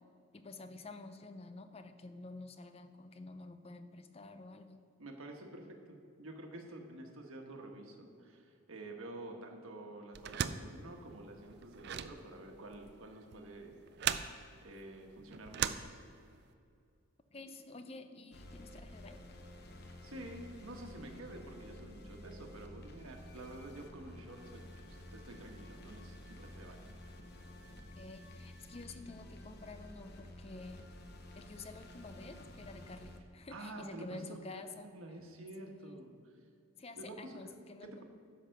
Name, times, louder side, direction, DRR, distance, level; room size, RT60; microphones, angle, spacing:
voice 1, 0.3-4.8 17.3-19.2 28.0-30.8 31.3-34.9 35.6-36.0 36.8-38.0, left 3 dB, 25° left, 9 dB, 0.5 m, -50 dB
voice 2, 5.0-13.8 14.6-15.7 20.0-26.9 33.5-34.4 34.7-36.4 37.0-37.4 37.8-38.0, right 1 dB, 70° right, 2 dB, 1.3 m, -49 dB
sound 1, 10.1-16.5, right 8 dB, 50° right, 0.4 m, -39 dB
sound 2, 18.3-33.2, left 1 dB, 45° left, 0.9 m, -52 dB
10.5 x 5.8 x 6.5 m, 2.4 s
head